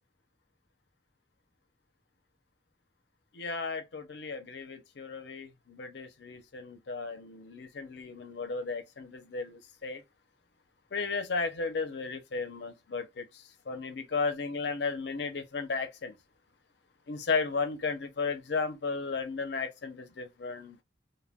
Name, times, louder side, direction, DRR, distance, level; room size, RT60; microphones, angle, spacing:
voice 1, 3.3-10.0 10.9-16.1 17.1-20.8, left 4 dB, 60° left, 0.5 m, -34 dB
2.2 x 2.1 x 3.3 m
head